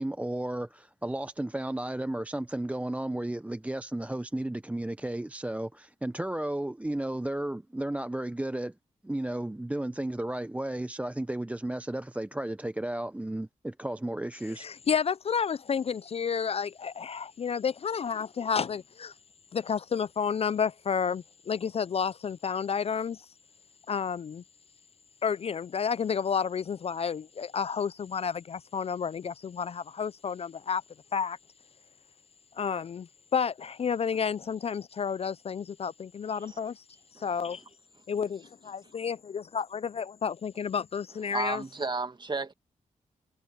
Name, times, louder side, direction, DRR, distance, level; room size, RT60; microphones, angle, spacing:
voice 1, 0.0-8.7 9.0-14.7, right 1 dB, 10° right, 0.5 m, -33 dB
voice 2, 14.6-19.1 19.5-23.3 23.9-24.4 25.2-30.8 31.1-31.4 32.6-36.8 37.2-37.6 38.1-41.6, left 6 dB, 50° left, 0.4 m, -31 dB
voice 3, 36.3-36.6 37.1-37.3 41.3-42.5, right 3 dB, 35° right, 1.6 m, -33 dB
cardioid pair, 65°, 14 cm